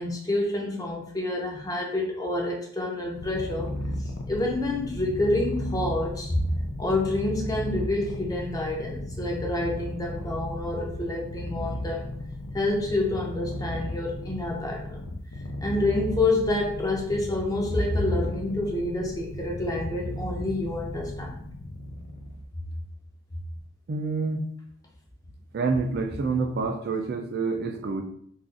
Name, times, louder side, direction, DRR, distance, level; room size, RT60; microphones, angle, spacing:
voice 1, 0.0-3.7 4.0-6.5 6.8-12.1 12.5-15.1 15.6-21.4, left 2 dB, 15° left, -1 dB, 0.5 m, -28 dB
Purr, 3.1-22.4, left 1 dB, 75° left, 0.4 m, -35 dB
voice 2, 23.9-24.4 25.5-28.0, right 4 dB, 50° right, 4 dB, 0.3 m, -27 dB
2.5 x 2.4 x 3.7 m, 0.65 s
head